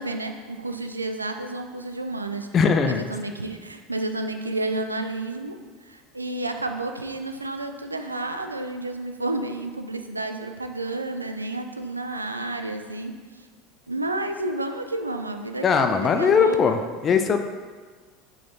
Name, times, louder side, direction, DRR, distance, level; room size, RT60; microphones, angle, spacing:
voice 1, 0.0-2.5 2.8-5.6 5.9-13.5 13.9-16.8, right 2 dB, 90° right, 6 dB, 0.4 m, -31 dB
voice 2, 2.5-3.1 15.6-17.4, left 6 dB, 35° left, 7 dB, 0.4 m, -20 dB
6.4 x 3.8 x 4.0 m, 1.5 s
figure-of-eight pair, 75°, 0 cm